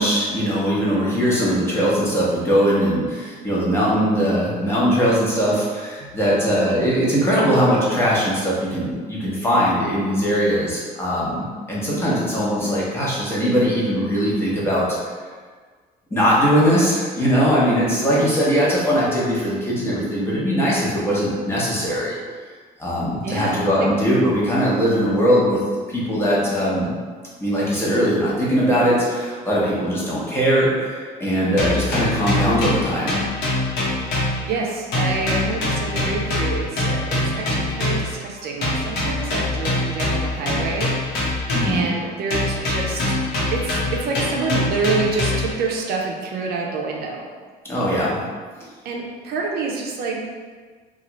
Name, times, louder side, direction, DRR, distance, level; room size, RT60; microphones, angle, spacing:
voice 1, 0.0-14.9 16.1-22.2 22.8-25.6 25.9-26.9 27.4-33.2 41.5-41.9 47.6-48.2, equal, 15° left, -7 dB, 0.9 m, -20 dB
voice 2, 23.2-23.9 34.0-43.2 43.5-47.3 48.8-50.2, right 4 dB, 65° right, 0 dB, 0.5 m, -27 dB
sound 1, 31.6-34.7 34.9-38.2 38.6-41.9 42.3-45.6, left 1 dB, 80° left, 0.9 m, -24 dB
2.9 x 2.3 x 2.9 m, 1.5 s
cardioid pair, 110°, 17 cm